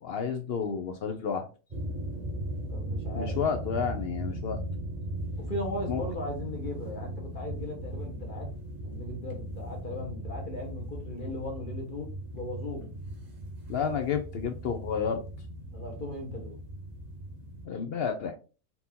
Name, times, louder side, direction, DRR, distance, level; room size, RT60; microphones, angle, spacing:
voice 1, 0.0-1.5 3.1-4.6 5.9-6.0 13.7-15.2 17.6-18.4, left 6 dB, 60° left, 0.7 m, -31 dB
sound 1, 1.7-17.7, right 1 dB, 35° right, 1.0 m, -38 dB
voice 2, 2.7-3.5 5.4-8.5 8.8-12.1 12.3-12.9 13.9-14.1 15.7-16.6, left 1 dB, 40° left, 1.1 m, -38 dB
4.3 x 2.8 x 3.6 m
omnidirectional pair, 1.4 m